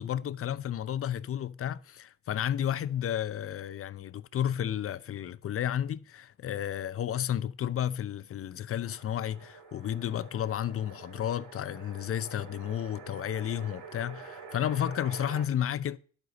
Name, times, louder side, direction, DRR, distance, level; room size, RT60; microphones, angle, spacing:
voice 1, 0.0-16.0, left 10 dB, 50° left, 0.6 m, -32 dB
sound 1, 8.8-15.4, right 5 dB, 75° right, 5.0 m, -47 dB
11.0 x 8.2 x 4.1 m
cardioid pair, 90°, 30 cm